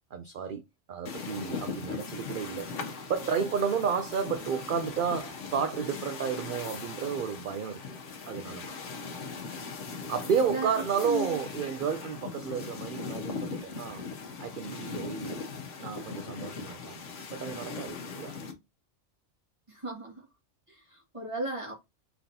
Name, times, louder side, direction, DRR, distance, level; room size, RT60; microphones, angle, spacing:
voice 1, 0.1-0.6 0.9-2.7 3.1-7.8 8.3-8.7 10.1-14.1 14.4-15.4 15.8-17.0 17.3-18.4, right 7 dB, 60° right, 0.6 m, -32 dB
sound 1, 1.1-18.5, left 4 dB, 80° left, 1.2 m, -39 dB
voice 2, 10.5-11.4 19.7-20.2 20.7-21.7, right 1 dB, 25° right, 1.7 m, -35 dB
3.9 x 3.5 x 2.7 m
omnidirectional pair, 1.2 m